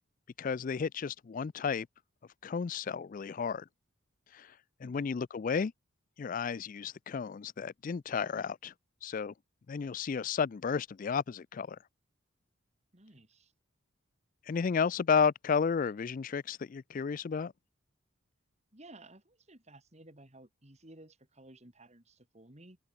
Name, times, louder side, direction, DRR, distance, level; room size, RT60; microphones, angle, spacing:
voice 1, 0.4-1.9 2.4-3.7 4.3-4.5 4.8-5.7 6.2-8.7 9.0-9.3 9.7-11.8 14.5-17.5, left 6 dB, 40° left, 0.3 m, -32 dB
voice 2, 12.9-13.5 18.7-22.8, right 1 dB, 30° right, 2.8 m, -55 dB
open air
head